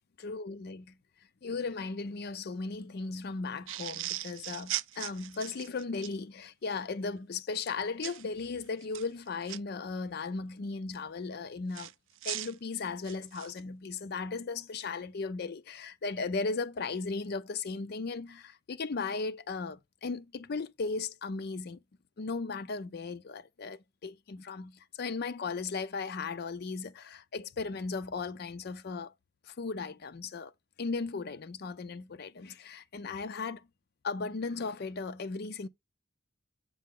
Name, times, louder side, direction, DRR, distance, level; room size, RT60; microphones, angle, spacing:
voice 1, 0.2-0.9 1.4-11.9 12.2-21.8 22.2-29.1 29.4-30.5 30.8-33.7 34.0-35.7, left 4 dB, 50° left, 0.5 m, -36 dB
sound 1, 3.7-6.2 8.0-8.2 8.8-9.6 11.7-13.6, right 14 dB, 70° right, 0.4 m, -38 dB
7.5 x 4.9 x 3.6 m
head